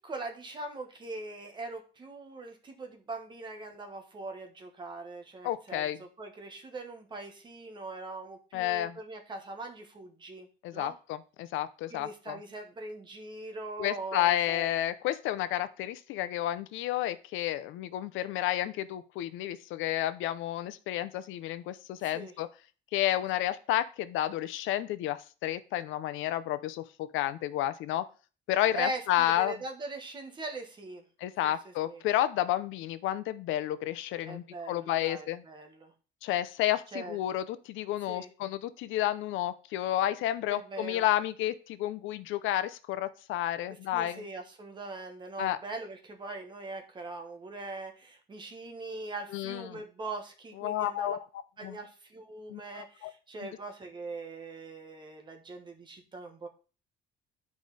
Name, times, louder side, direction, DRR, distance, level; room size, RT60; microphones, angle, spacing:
voice 1, 0.0-10.5 10.7-11.0 11.9-14.8 22.0-22.3 28.7-31.0 31.4-31.5 31.8-32.0 34.3-35.9 36.9-37.2 38.1-38.3 40.5-41.1 43.9-51.2 51.6-56.5, right 2 dB, 25° right, 4 dB, 1.3 m, -41 dB
voice 2, 5.4-6.0 8.5-9.0 10.6-12.4 13.8-22.5 22.9-28.0 28.5-29.5 31.2-35.4 36.2-44.2 45.4-45.6 49.3-49.8 50.6-51.2 51.6-51.8 52.5-53.1, left 13 dB, 80° left, 13 dB, 0.6 m, -31 dB
10.5 x 4.9 x 4.0 m, 0.36 s
cardioid pair, 175°, 20 cm